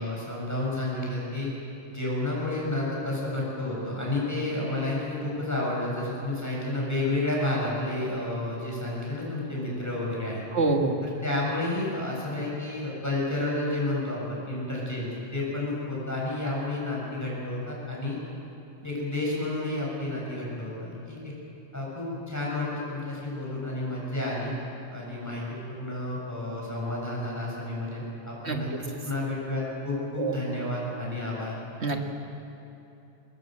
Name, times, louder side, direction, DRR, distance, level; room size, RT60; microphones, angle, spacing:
voice 1, 0.0-1.5 1.9-10.5 11.0-18.2 18.8-21.3 21.7-24.5 24.9-31.6, left 2 dB, 15° left, -5 dB, 7.5 m, -31 dB
voice 2, 10.5-11.0 28.5-28.6 30.2-30.4 31.8-32.0, right 3 dB, 75° right, 3 dB, 2.1 m, -25 dB
23.0 x 21.0 x 7.8 m, 2.9 s
omnidirectional pair, 1.1 m